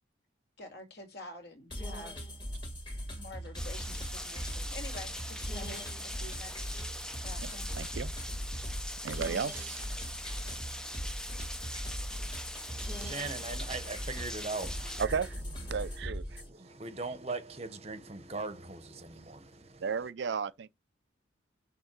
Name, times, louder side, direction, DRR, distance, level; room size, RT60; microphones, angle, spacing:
voice 1, 0.6-2.3 3.1-6.8 7.2-7.9, left 1 dB, 50° left, 2.4 m, -48 dB
sound 1, 1.7-16.5, equal, 25° left, 2.0 m, -39 dB
Rain, 3.5-15.1, left 1 dB, 5° left, 0.4 m, -42 dB
voice 2, 7.8-8.1 9.0-9.9 15.0-15.3 15.7-16.4 19.8-20.7, right 6 dB, 60° right, 0.4 m, -34 dB
voice 3, 12.7-15.0 15.6-20.1, right 3 dB, 30° right, 0.8 m, -41 dB
6.4 x 3.5 x 6.0 m
head